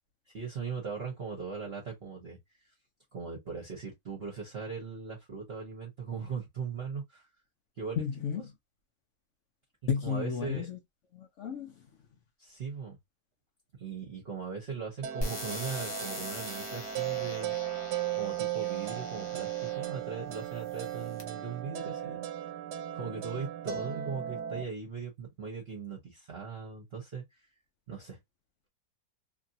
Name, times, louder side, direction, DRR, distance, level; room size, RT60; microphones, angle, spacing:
voice 1, 0.3-2.4 3.1-7.3 7.8-8.0 8.3-8.4 10.0-10.7 12.4-13.0 13.8-17.5 18.2-22.3 22.9-27.2 27.9-28.2, right 5 dB, 45° right, 0.9 m, -39 dB
voice 2, 8.0-8.5 9.9-10.8 11.1-11.9, left 7 dB, 70° left, 0.7 m, -33 dB
sound 1, 15.0-24.6, right 11 dB, 80° right, 1.1 m, -36 dB
sound 2, 15.2-19.9 20.6-21.2, left 1 dB, 25° left, 0.5 m, -41 dB
2.9 x 2.6 x 2.6 m
omnidirectional pair, 1.8 m